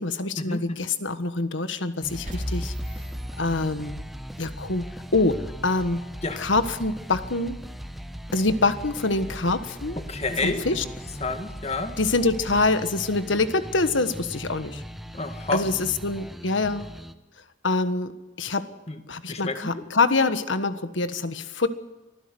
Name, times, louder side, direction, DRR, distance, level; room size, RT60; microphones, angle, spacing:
voice 1, 0.0-2.7 3.4-4.0 4.4-6.1 6.4-7.6 8.3-10.0 10.4-10.8 12.0-14.8 15.5-16.9 17.6-18.7 19.1-21.7, left 3 dB, 85° left, 11 dB, 1.5 m, -25 dB
sound 1, 2.0-17.1, equal, ahead, 1.0 m, -39 dB
sound 2, 2.3-4.3, equal, 45° right, 2.5 m, -35 dB
voice 2, 10.0-10.7 11.2-12.0 15.1-15.6 18.9-19.0 19.3-19.8, left 3 dB, 35° left, 8 dB, 2.0 m, -29 dB
24.5 x 15.5 x 7.9 m, 1.1 s
head